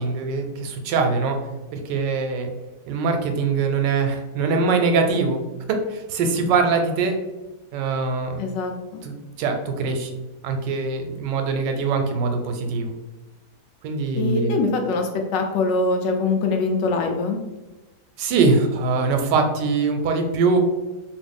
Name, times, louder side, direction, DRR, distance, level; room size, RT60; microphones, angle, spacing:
voice 1, 0.0-1.4 1.7-2.5 2.9-5.4 5.7-7.2 7.7-8.4 9.0-10.1 10.4-12.9 13.8-14.6 18.2-20.6, right 4 dB, 85° right, 5 dB, 1.2 m, -22 dB
voice 2, 8.4-9.0 14.2-17.4, left 3 dB, 90° left, 3 dB, 1.3 m, -23 dB
3.1 x 2.6 x 3.4 m, 1.1 s
omnidirectional pair, 1.9 m